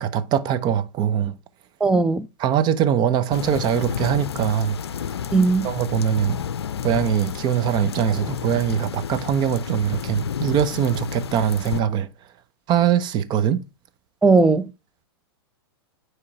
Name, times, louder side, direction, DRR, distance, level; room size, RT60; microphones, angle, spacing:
voice 1, 0.0-1.4 2.4-4.8 5.6-6.4 6.8-12.1 12.7-13.6, right 9 dB, 35° right, 0.8 m, -22 dB
voice 2, 1.8-2.3 5.3-5.7 14.2-14.6, right 3 dB, 5° right, 0.5 m, -17 dB
sound 1, 3.3-11.8, left 8 dB, 85° left, 0.4 m, -31 dB
9.5 x 3.3 x 4.4 m
hypercardioid pair, 110°, 13 cm